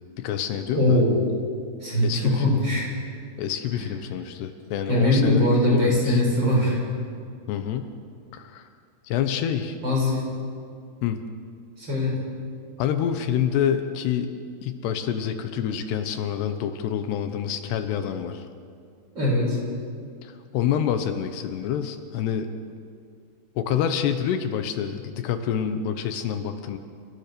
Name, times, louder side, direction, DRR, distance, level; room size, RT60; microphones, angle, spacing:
voice 1, 0.2-1.0 2.0-2.6 3.4-6.2 7.5-7.9 8.3-8.6 9.0-9.8 11.0-11.2 12.8-14.3 14.6-18.4 20.2-22.5 23.6-26.8, left 9 dB, 80° left, 8 dB, 3.1 m, -27 dB
voice 2, 0.7-1.1 1.8-2.9 4.9-6.8 9.8-10.2 11.8-12.1 19.1-19.6, left 1 dB, 25° right, -3 dB, 6.0 m, -21 dB
29.5 x 15.5 x 6.8 m, 2.2 s
omnidirectional pair, 4.8 m